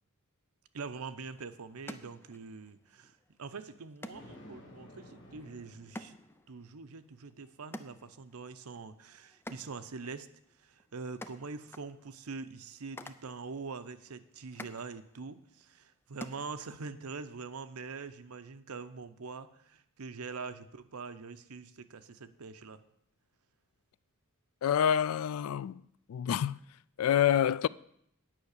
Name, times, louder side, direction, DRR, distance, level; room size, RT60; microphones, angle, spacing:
voice 1, 0.7-6.2 6.5-10.3 10.6-22.8, right 4 dB, 85° right, 0.7 m, -44 dB
sound 1, 1.0-17.0, left 1 dB, 10° left, 0.5 m, -52 dB
Thunder, 4.1-6.6, left 1 dB, 55° left, 2.4 m, -53 dB
voice 2, 24.6-25.8 26.1-26.6 27.0-27.7, left 9 dB, 75° left, 0.3 m, -27 dB
9.3 x 5.7 x 8.2 m
head